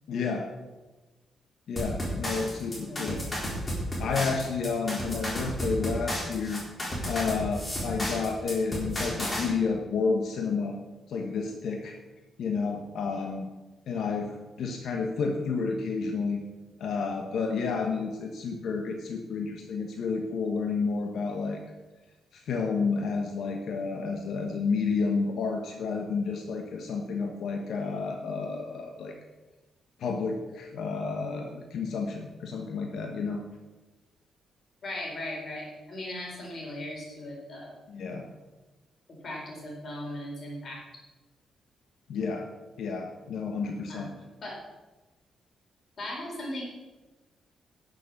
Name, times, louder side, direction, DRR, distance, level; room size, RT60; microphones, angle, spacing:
voice 1, 0.1-0.5 1.7-3.2 4.0-6.6 7.1-10.8 11.1-12.0 12.4-13.5 13.9-16.4 16.8-21.6 22.3-29.1 30.0-33.4 37.9-38.2 42.1-42.5 42.8-44.1, left 4 dB, 70° left, 3 dB, 1.2 m, -30 dB
sound 1, 1.8-9.4, equal, 20° left, 3.9 m, -32 dB
voice 2, 2.9-3.3 34.8-37.8 39.2-40.8 43.9-44.6 46.0-46.6, left 1 dB, 45° left, -2 dB, 4.4 m, -38 dB
12.0 x 6.9 x 7.1 m, 1.2 s
cardioid pair, 140°, 0 cm